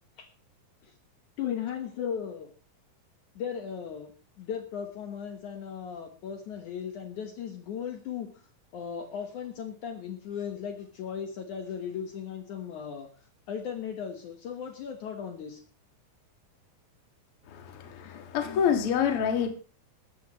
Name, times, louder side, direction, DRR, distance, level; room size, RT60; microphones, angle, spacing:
voice 1, 1.4-2.5 3.4-4.1 4.4-8.4 8.7-13.1 13.5-15.6 18.1-18.6, left 8 dB, 65° left, 5 dB, 2.5 m, -37 dB
voice 2, 17.5-19.5, left 8 dB, 45° left, 5 dB, 2.2 m, -27 dB
17.0 x 13.5 x 3.1 m, 0.36 s
omnidirectional pair, 4.2 m